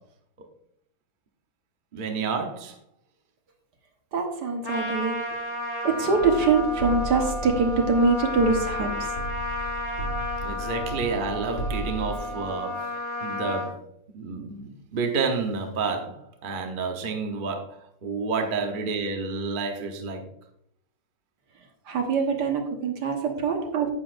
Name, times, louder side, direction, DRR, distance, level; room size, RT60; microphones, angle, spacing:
voice 1, 1.9-2.8 10.4-13.8 14.1-20.2 23.2-23.3, right 4 dB, 35° right, 3 dB, 0.9 m, -30 dB
voice 2, 4.1-5.2 5.8-9.1 21.9-23.9, right 4 dB, 65° right, 3 dB, 1.8 m, -24 dB
Trumpet, 4.6-13.7, left 1 dB, 10° left, 2.1 m, -32 dB
sound 1, 6.2-12.1, equal, 55° left, 1.7 m, -35 dB
10.0 x 8.3 x 2.6 m, 0.73 s
omnidirectional pair, 2.0 m